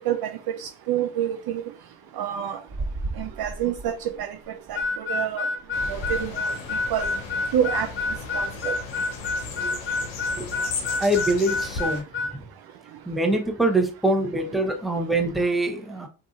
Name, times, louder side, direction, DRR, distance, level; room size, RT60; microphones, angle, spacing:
voice 1, 0.0-1.6 2.1-2.6 3.2-5.5 5.9-7.1 7.5-7.9 8.3-8.8, right 10 dB, 50° right, 0.5 m, -28 dB
sound 1, 2.7-4.8 5.7-6.4 6.7-7.3 7.8-8.4, right 2 dB, 30° right, 1.0 m, -36 dB
Harmonica, 4.8-12.4, left 3 dB, 25° left, 0.5 m, -28 dB
sound 2, 5.7-12.0, left 4 dB, 75° left, 0.8 m, -36 dB
voice 2, 11.0-12.0 12.3-12.4 13.1-16.1, right 1 dB, ahead, 0.8 m, -24 dB
2.6 x 2.6 x 2.4 m
hypercardioid pair, 40°, 48 cm